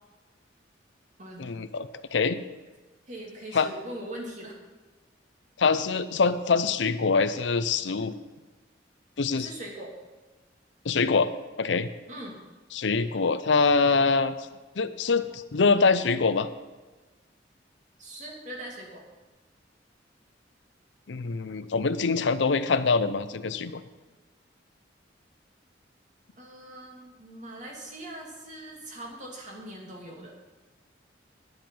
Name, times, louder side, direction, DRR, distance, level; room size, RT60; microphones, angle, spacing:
voice 1, 1.4-2.4 3.5-3.7 5.6-8.1 9.2-9.5 10.8-11.3 11.6-11.9 12.7-14.5 14.8-16.5 21.1-23.8, left 4 dB, 75° left, 12 dB, 0.6 m, -24 dB
voice 2, 3.1-4.6 9.3-9.9 12.1-12.4 18.0-19.0 26.4-30.3, right 1 dB, 40° right, 0 dB, 2.6 m, -41 dB
10.5 x 10.5 x 5.4 m, 1.2 s
head